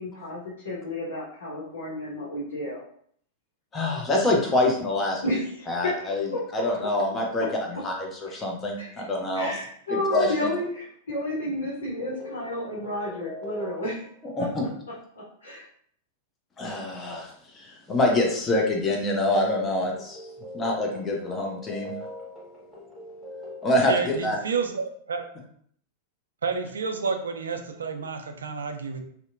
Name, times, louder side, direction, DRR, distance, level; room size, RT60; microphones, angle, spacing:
voice 1, 0.0-2.8 5.2-6.6 8.3-8.4 8.8-8.9 9.3-14.0 14.4-14.5 15.1-15.7, left 1 dB, 70° left, -8 dB, 0.8 m, -31 dB
voice 2, 3.7-5.2 5.7-6.3 6.5-7.5 7.8-9.5 9.9-10.3 14.4-14.7 16.6-20.2 20.5-21.9 23.6-24.4, left 1 dB, 20° left, 0 dB, 0.6 m, -25 dB
sound 1, 11.9-14.3 19.5-24.1, left 1 dB, ahead, 1.1 m, -42 dB
voice 3, 23.9-25.3 26.4-29.0, right 5 dB, 70° right, 6 dB, 0.3 m, -30 dB
2.7 x 2.1 x 2.6 m, 0.63 s
figure-of-eight pair, 95°, 0 cm